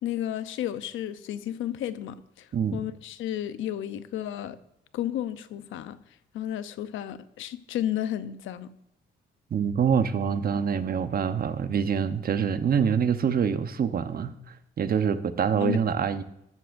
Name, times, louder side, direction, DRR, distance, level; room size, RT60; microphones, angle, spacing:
voice 1, 0.0-4.6 4.9-6.0 6.3-8.7 15.6-15.8, left 11 dB, 80° left, 0.8 m, -32 dB
voice 2, 9.5-14.3 14.8-16.2, right 7 dB, 50° right, 1.0 m, -25 dB
13.5 x 13.0 x 2.6 m
cardioid pair, 90°, 20 cm